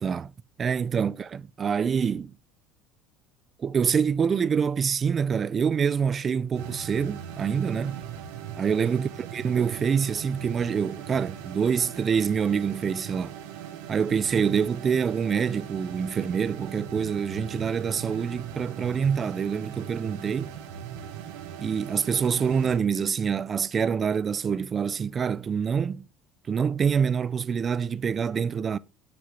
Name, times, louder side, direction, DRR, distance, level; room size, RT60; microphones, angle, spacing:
voice 1, 0.0-0.3 0.6-2.3 3.6-8.0 8.6-13.3 13.9-20.5 21.6-26.1 26.5-28.8, right 6 dB, 25° right, 0.3 m, -26 dB
sound 1, 6.5-22.8, right 9 dB, 85° right, 1.0 m, -39 dB
6.3 x 5.9 x 4.6 m
cardioid pair, 155°, 0 cm